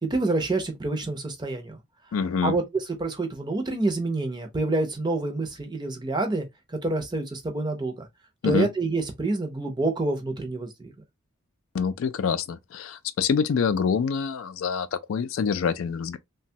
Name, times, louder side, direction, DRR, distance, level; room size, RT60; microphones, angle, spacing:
voice 1, 0.0-1.8 2.4-8.1 8.4-10.9, right 2 dB, 20° right, 0.5 m, -27 dB
voice 2, 2.1-2.6 8.4-8.7 11.7-16.2, left 6 dB, 70° left, 0.3 m, -26 dB
2.9 x 2.2 x 2.7 m
head